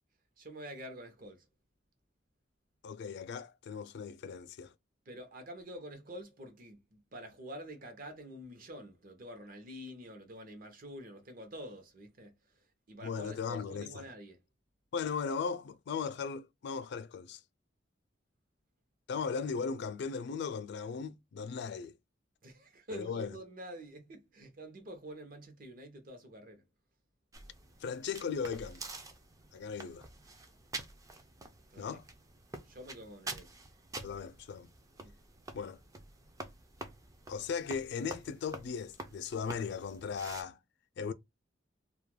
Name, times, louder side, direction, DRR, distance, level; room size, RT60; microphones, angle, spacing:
voice 1, 0.4-1.5 5.1-14.4 22.4-26.6 31.7-32.0 32.7-33.6 35.0-35.1, equal, 50° right, 0.7 m, -47 dB
voice 2, 2.8-4.7 13.0-14.0 14.9-17.4 19.1-21.9 22.9-23.4 27.8-28.8 29.5-30.1 31.8-32.0 34.0-34.7 35.5-35.8 37.3-40.6 41.0-41.1, left 6 dB, 65° left, 0.3 m, -37 dB
sound 1, 27.3-40.4, right 2 dB, 20° right, 0.4 m, -48 dB
2.3 x 2.1 x 3.0 m
head